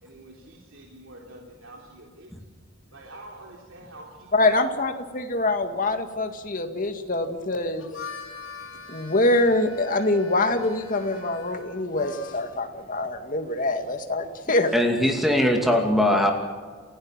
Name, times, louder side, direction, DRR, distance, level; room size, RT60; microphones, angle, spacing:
voice 1, 0.0-2.3 2.9-4.3 9.0-9.1, right 1 dB, 80° right, -1 dB, 3.5 m, -46 dB
voice 2, 4.3-7.9 8.9-14.7, left 2 dB, 40° left, 6 dB, 2.1 m, -24 dB
Harmonica, 7.6-12.6, left 5 dB, 90° left, 2.7 m, -42 dB
voice 3, 14.7-16.3, left 1 dB, ahead, 2 dB, 2.5 m, -20 dB
29.5 x 16.0 x 7.5 m, 1.5 s
head